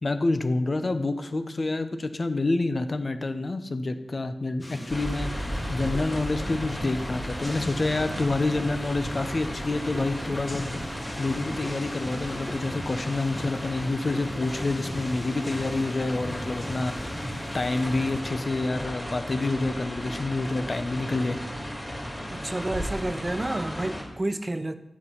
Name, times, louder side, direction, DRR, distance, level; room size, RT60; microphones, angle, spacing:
voice 1, 0.0-17.3 17.5-21.4, left 2 dB, 50° left, 9 dB, 0.8 m, -28 dB
sound 1, 4.6-18.2, left 1 dB, 30° left, 1.5 m, -38 dB
sound 2, 4.9-24.0, equal, 10° left, 2.6 m, -35 dB
voice 2, 22.3-24.8, right 1 dB, 30° right, 11 dB, 0.5 m, -30 dB
7.8 x 6.2 x 5.6 m, 0.88 s
cardioid pair, 60°, 0 cm